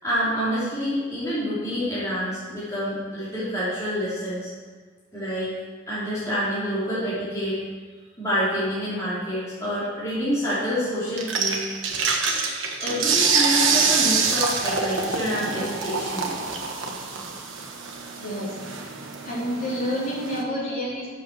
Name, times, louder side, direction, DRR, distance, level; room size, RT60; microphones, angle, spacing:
voice 1, 0.0-4.5 5.1-5.5 5.9-7.6 8.2-11.6 12.8-16.3, equal, 15° left, -11 dB, 2.9 m, -27 dB
sound 1, 11.2-20.4, right 5 dB, 65° right, 1.3 m, -25 dB
voice 2, 18.2-18.6 19.2-21.1, equal, 40° left, -8 dB, 3.7 m, -28 dB
7.9 x 6.9 x 7.3 m, 1.4 s
head